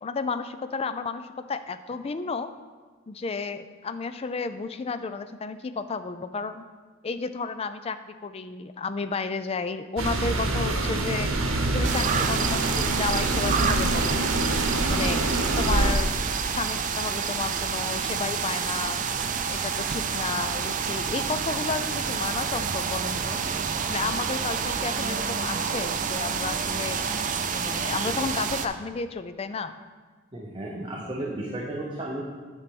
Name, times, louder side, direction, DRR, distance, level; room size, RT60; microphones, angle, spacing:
voice 1, 0.0-2.5 3.1-6.6 7.0-11.3 11.7-14.2 14.9-16.2 16.5-19.0 19.5-23.4 23.9-27.0 27.5-29.7, left 4 dB, 30° left, 11 dB, 0.3 m, -32 dB
sound 1, 10.0-15.9, right 2 dB, 75° right, 0.9 m, -26 dB
sound 2, 11.8-28.7, right 6 dB, 40° right, 0.4 m, -28 dB
voice 2, 30.3-32.2, right 1 dB, 25° right, -3 dB, 0.8 m, -33 dB
9.7 x 4.4 x 5.3 m, 1.4 s
head